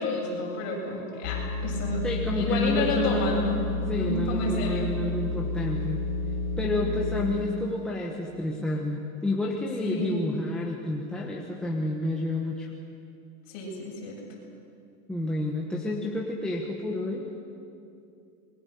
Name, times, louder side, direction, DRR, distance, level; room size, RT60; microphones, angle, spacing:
voice 1, 0.0-2.0 2.3-3.6 4.0-4.9 6.6-7.0 9.8-10.2 13.5-14.2, left 2 dB, 35° left, -3 dB, 7.7 m, -31 dB
sound 1, 1.2-7.7, left 3 dB, 55° left, 5.3 m, -31 dB
voice 2, 2.0-6.0 6.6-12.7 15.1-17.3, left 1 dB, ahead, -3 dB, 1.1 m, -30 dB
27.5 x 22.0 x 6.8 m, 2.6 s
supercardioid pair, 175°, 45 cm